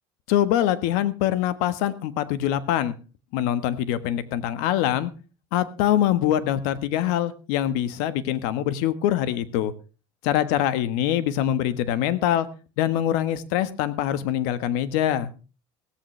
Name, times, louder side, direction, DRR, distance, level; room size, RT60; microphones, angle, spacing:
voice 1, 0.3-2.9 3.3-5.1 5.5-9.7 10.2-12.5 12.8-15.3, left 11 dB, 80° left, 14 dB, 1.5 m, -24 dB
16.5 x 14.5 x 3.3 m, 0.32 s
cardioid pair, 125°, 11 cm